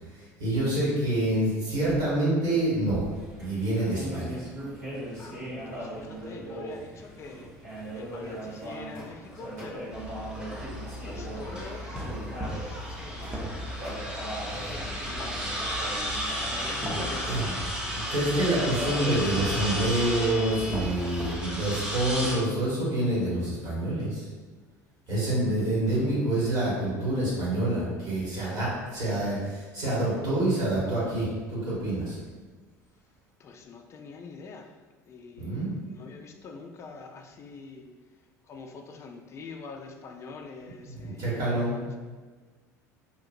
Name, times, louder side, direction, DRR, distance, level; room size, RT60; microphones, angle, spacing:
voice 1, 0.1-3.0 3.4-4.4 16.9-17.6 17.9-24.3 25.1-32.2 35.4-35.9 40.9-41.7, right 1 dB, 50° right, -7 dB, 1.4 m, -27 dB
sound 1, 3.1-19.4, right 1 dB, 75° right, 1.3 m, -40 dB
voice 2, 5.2-7.5 7.9-10.3 11.0-13.6 14.6-17.8 25.6-25.8 33.4-34.8 35.1-37.9 38.5-42.0, left 4 dB, 30° left, 3 dB, 0.3 m, -45 dB
sound 2, 9.9-22.4, equal, 10° right, 0.7 m, -33 dB
2.9 x 2.4 x 2.6 m, 1.3 s
figure-of-eight pair, 65°, 9 cm